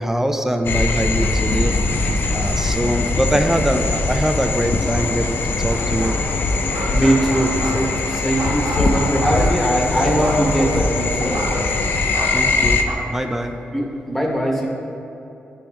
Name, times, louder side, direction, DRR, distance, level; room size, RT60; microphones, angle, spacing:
voice 1, 0.0-1.7 2.3-6.2 12.3-12.8 13.1-13.6, equal, 10° right, 6 dB, 0.5 m, -22 dB
sound 1, 0.6-12.8, left 3 dB, 65° left, 0.4 m, -21 dB
sound 2, 5.7-6.3 6.6-8.0 8.4-11.9 12.1-12.9, right 1 dB, 80° right, 1.3 m, -28 dB
voice 2, 6.9-11.4 13.7-14.7, right 1 dB, 10° left, -1 dB, 1.1 m, -21 dB
9.1 x 3.5 x 3.0 m, 2.8 s
cardioid pair, 55°, 4 cm